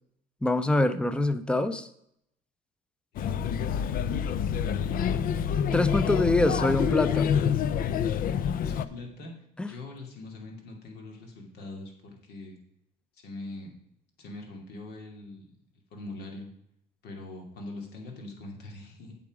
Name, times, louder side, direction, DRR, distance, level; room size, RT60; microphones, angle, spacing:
voice 1, 0.4-1.9 5.7-7.3 9.6-9.7, left 2 dB, 5° left, 12 dB, 0.6 m, -25 dB
voice 2, 3.1-3.5 8.5-9.3 9.6-12.6 13.2-13.7 14.2-15.5 15.9-16.5 17.0-19.1, left 2 dB, 75° left, 1 dB, 2.6 m, -42 dB
Male speech man speaking / Child speech kid speaking / Chatter, 3.2-8.9, left 8 dB, 55° left, 0.5 m, -27 dB
8.4 x 7.3 x 4.8 m, 0.74 s
cardioid pair, 110°, 17 cm